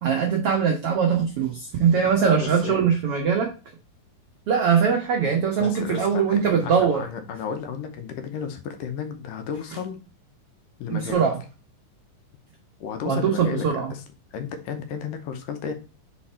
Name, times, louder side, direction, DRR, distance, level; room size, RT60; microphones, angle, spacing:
voice 1, 0.0-3.5 4.5-7.0 10.9-11.4 13.0-13.9, right 6 dB, 85° right, 1 dB, 1.2 m, -21 dB
voice 2, 2.2-2.9 5.6-10.0 10.8-11.3 12.8-14.0 14.3-15.7, left 6 dB, 75° left, 6 dB, 2.4 m, -33 dB
5.2 x 4.5 x 4.2 m, 0.34 s
omnidirectional pair, 4.1 m